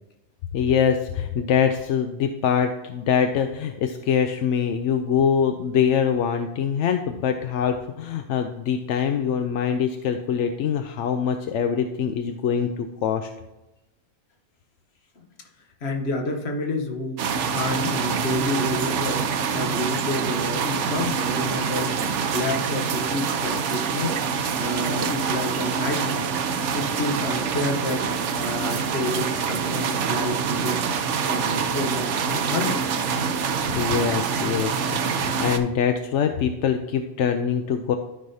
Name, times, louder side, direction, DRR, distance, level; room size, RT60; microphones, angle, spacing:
voice 1, 0.5-13.3 33.7-38.0, left 7 dB, 85° left, 6 dB, 0.9 m, -24 dB
voice 2, 15.8-17.2 17.5-19.2 19.5-22.0 22.3-24.2 24.6-26.3 26.7-30.9 31.3-32.8, left 2 dB, 65° left, 4 dB, 1.3 m, -29 dB
sound 1, 17.2-35.6, right 6 dB, 85° right, 1.0 m, -25 dB
12.5 x 5.3 x 2.7 m, 0.98 s
omnidirectional pair, 1.2 m